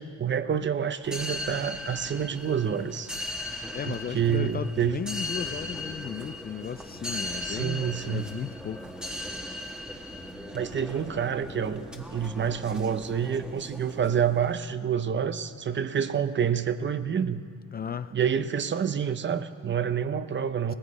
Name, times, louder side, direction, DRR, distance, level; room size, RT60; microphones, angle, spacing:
voice 1, 0.0-3.1 3.9-5.0 7.4-8.3 10.5-17.4 18.1-20.7, right 7 dB, 40° right, 12 dB, 0.7 m, -28 dB
sound 1, 1.0-14.5, left 1 dB, 5° right, 1.3 m, -38 dB
voice 2, 3.7-8.9 17.7-18.1, left 8 dB, 30° left, 13 dB, 0.4 m, -35 dB
19.5 x 14.5 x 4.2 m, 2.3 s
cardioid pair, 90°, 30 cm